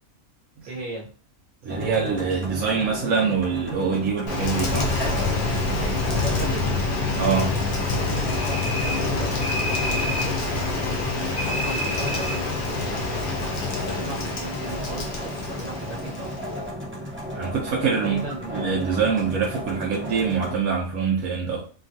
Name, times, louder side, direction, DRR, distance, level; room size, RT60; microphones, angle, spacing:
voice 1, 0.7-1.1 5.8-6.8 8.4-10.9 11.5-13.1 13.5-16.5 18.0-18.6, right 2 dB, 60° right, 1.4 m, -37 dB
voice 2, 1.6-4.9 7.2-7.6 17.3-18.2 18.5-21.7, right 6 dB, 85° right, 1.1 m, -24 dB
sound 1, 1.7-20.5, equal, 15° right, 0.4 m, -34 dB
Rain, 4.3-16.7, left 3 dB, 90° left, 1.2 m, -27 dB
sound 2, 8.3-9.1 9.4-10.4 11.3-12.4, equal, 35° left, 0.9 m, -30 dB
3.3 x 2.3 x 2.6 m
omnidirectional pair, 1.5 m